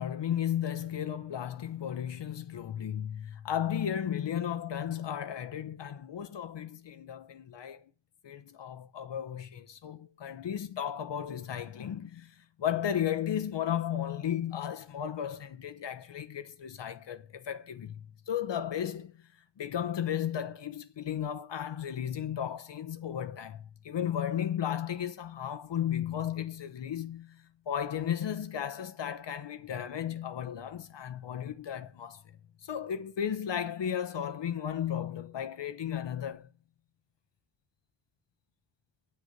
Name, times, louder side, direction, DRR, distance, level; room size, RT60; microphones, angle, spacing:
voice 1, 0.0-7.9 8.2-19.3 19.6-36.5, left 9 dB, 65° left, 1.0 m, -34 dB
9.5 x 6.6 x 6.6 m
cardioid pair, 85°, 47 cm